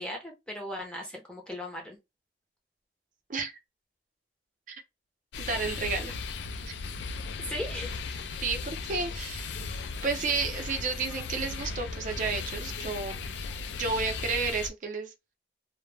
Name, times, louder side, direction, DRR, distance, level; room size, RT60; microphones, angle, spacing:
voice 1, 0.0-2.0 7.4-8.2, left 1 dB, 5° left, 0.6 m, -38 dB
sound 1, 5.3-14.7, left 4 dB, 75° left, 0.4 m, -36 dB
voice 2, 5.4-6.1 6.7-6.8 8.4-9.6 10.0-13.2 13.7-15.4, right 4 dB, 45° right, 0.5 m, -32 dB
2.1 x 2.0 x 3.2 m
head